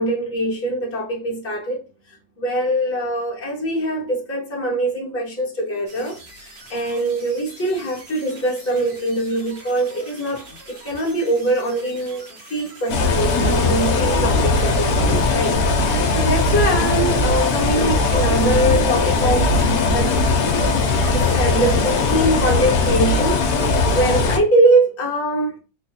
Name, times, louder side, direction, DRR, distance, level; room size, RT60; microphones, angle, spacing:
voice 1, 0.0-1.8 2.4-6.2 6.7-19.5 19.8-20.1 20.9-23.5 23.9-25.6, right 1 dB, 25° left, 0.3 m, -22 dB
sound 1, 5.9-22.2, right 2 dB, 80° right, 1.9 m, -43 dB
sound 2, 12.9-24.4, left 3 dB, 65° left, 1.0 m, -19 dB
3.8 x 2.4 x 2.7 m
omnidirectional pair, 2.0 m